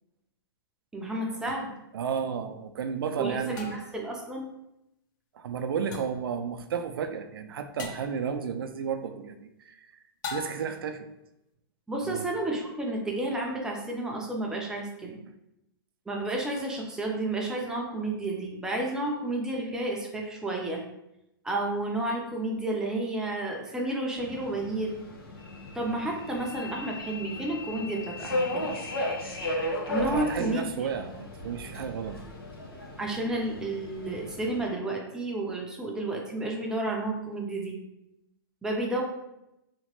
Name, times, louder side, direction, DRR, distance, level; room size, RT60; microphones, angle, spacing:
voice 1, 0.9-1.7 3.2-4.5 11.9-15.2 16.1-20.8 21.4-25.0 25.7-28.8 29.9-30.9 33.0-37.8 38.6-39.0, right 2 dB, 5° right, -1 dB, 0.5 m, -31 dB
sound 1, 1.5-1.6 3.6-4.1 5.9-6.3 7.8-8.2 10.2-10.9, left 5 dB, 50° left, 0.5 m, -39 dB
voice 2, 1.9-3.7 5.3-9.9 10.3-11.1 12.0-12.3 30.0-32.2, right 7 dB, 80° right, 7 dB, 0.4 m, -32 dB
Subway metro underground, 24.2-34.7, left 1 dB, 85° left, 0.9 m, -35 dB
2.9 x 2.1 x 2.9 m, 0.87 s
hypercardioid pair, 135°, 12 cm